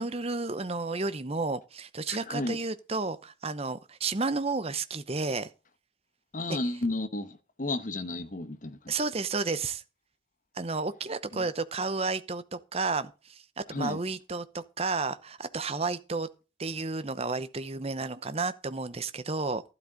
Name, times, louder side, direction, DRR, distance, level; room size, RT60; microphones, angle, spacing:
voice 1, 0.0-5.5 6.5-6.6 8.9-9.8 10.5-16.3 16.6-19.6, right 3 dB, 30° right, 0.8 m, -32 dB
voice 2, 2.1-2.6 6.3-8.9 11.3-11.4 13.7-14.0, left 2 dB, 40° left, 1.1 m, -33 dB
12.5 x 11.5 x 3.8 m
head